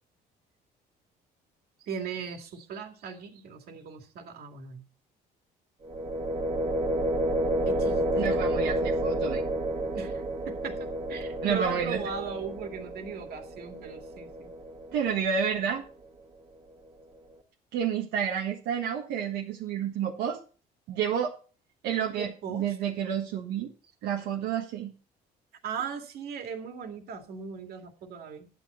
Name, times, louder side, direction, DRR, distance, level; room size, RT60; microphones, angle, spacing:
voice 1, 1.8-4.8 7.7-8.4 9.9-14.5 22.2-22.8 25.6-28.5, right 6 dB, 65° right, 4 dB, 2.3 m, -38 dB
sound 1, 5.8-15.7, right 1 dB, 35° right, 2.0 m, -30 dB
voice 2, 8.2-9.4 11.4-12.0 14.9-15.8 17.7-20.4 20.9-21.3 21.8-23.7 24.0-24.9, right 8 dB, 85° right, -1 dB, 1.5 m, -30 dB
11.0 x 9.2 x 4.4 m, 0.37 s
cardioid pair, 110°, 17 cm